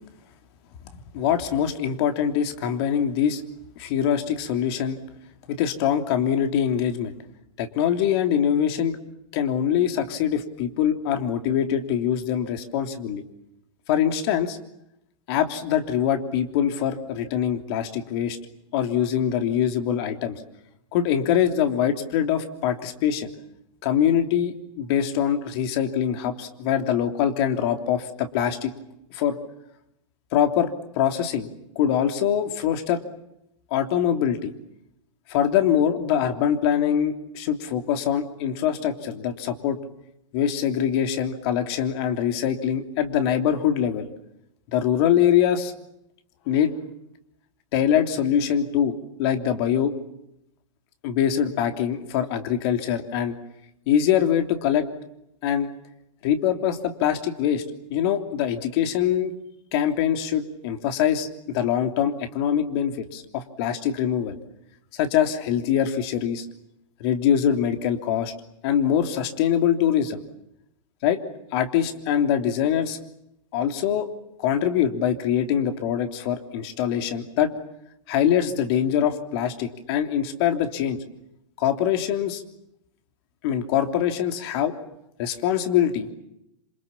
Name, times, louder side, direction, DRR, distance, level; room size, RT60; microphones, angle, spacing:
voice 1, 1.1-3.4 3.8-5.0 5.5-7.1 7.6-9.0 9.3-13.2 13.9-14.6 15.3-18.4 18.7-20.4 20.9-23.3 23.8-28.7 29.1-29.3 30.3-31.5 31.7-33.0 33.7-34.5 35.3-39.8 40.3-44.0 44.7-45.7 46.5-46.7 47.7-49.9 51.0-53.3 53.9-54.9 55.4-55.7 56.2-57.6 57.9-59.3 59.7-61.3 61.5-64.4 64.9-66.5 67.0-68.3 68.6-70.2 71.0-71.2 71.5-73.0 73.5-74.1 74.4-77.5 78.1-81.0 81.6-82.4 83.4-84.7 85.2-86.1, left 9 dB, 50° left, 6 dB, 3.2 m, -23 dB
27.5 x 27.0 x 7.3 m, 0.82 s
hypercardioid pair, 125°, 17 cm